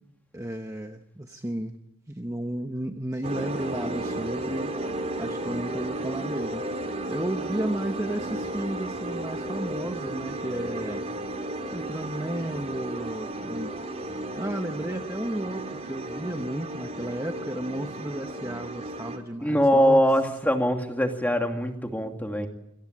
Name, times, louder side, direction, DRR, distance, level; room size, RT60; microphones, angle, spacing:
voice 1, 0.3-1.7 2.1-11.0 11.7-13.7 14.3-20.0, right 1 dB, 15° right, 5 dB, 1.0 m, -33 dB
sound 1, 3.2-19.2, right 1 dB, 30° right, 2.9 m, -33 dB
voice 2, 19.4-22.5, equal, 10° left, 4 dB, 2.5 m, -22 dB
26.5 x 18.5 x 8.6 m, 0.85 s
head